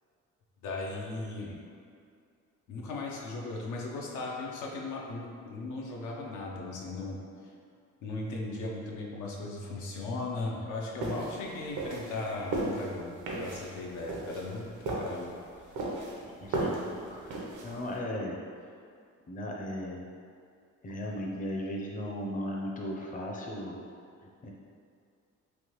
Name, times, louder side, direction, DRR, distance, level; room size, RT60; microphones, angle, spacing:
voice 1, 0.6-1.6 2.7-7.2 8.0-15.3, left 2 dB, 85° left, -2 dB, 0.5 m, -37 dB
sound 1, 11.0-17.9, right 2 dB, 80° right, 0.7 m, -35 dB
voice 2, 16.2-17.4 17.6-18.4 19.3-20.1 20.8-23.8 24.2-24.5, equal, 25° left, -2 dB, 0.5 m, -37 dB
3.3 x 2.2 x 2.9 m, 2.3 s
cardioid pair, 90°, 30 cm